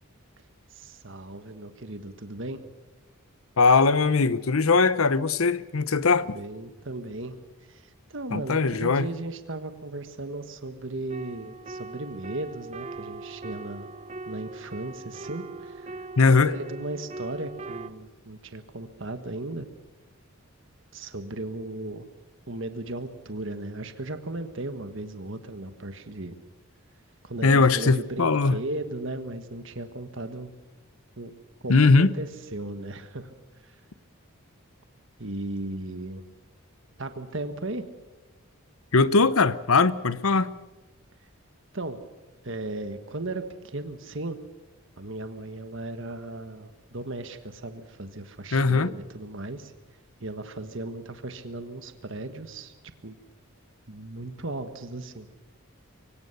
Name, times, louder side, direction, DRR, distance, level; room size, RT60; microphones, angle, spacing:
voice 1, 0.7-2.6 6.3-7.4 7.7-13.9 14.3-16.0 16.3-19.7 20.9-22.1 22.5-26.3 27.2-30.6 31.2-33.3 33.6-33.8 35.2-36.2 37.0-37.8 41.7-42.0 42.4-44.4 45.0-49.7 50.2-52.7 53.0-53.2 53.9-55.3, right 2 dB, 55° right, 1.4 m, -36 dB
voice 2, 3.6-6.3 8.3-9.1 16.2-16.5 27.4-28.6 31.7-32.1 38.9-40.5 48.5-48.9, left 4 dB, 75° left, 0.8 m, -20 dB
sound 1, 11.1-17.9, right 3 dB, 30° right, 0.8 m, -40 dB
24.0 x 17.5 x 6.8 m
head